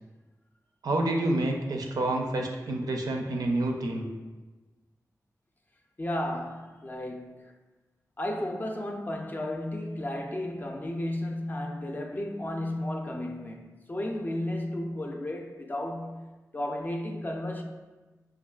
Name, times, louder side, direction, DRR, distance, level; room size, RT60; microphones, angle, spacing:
voice 1, 0.8-4.1, right 2 dB, 90° right, 0.4 m, -28 dB
voice 2, 6.0-7.5 8.2-17.6, left 1 dB, 30° left, 0.4 m, -33 dB
5.0 x 2.3 x 2.3 m
wide cardioid pair, 85°, 6 cm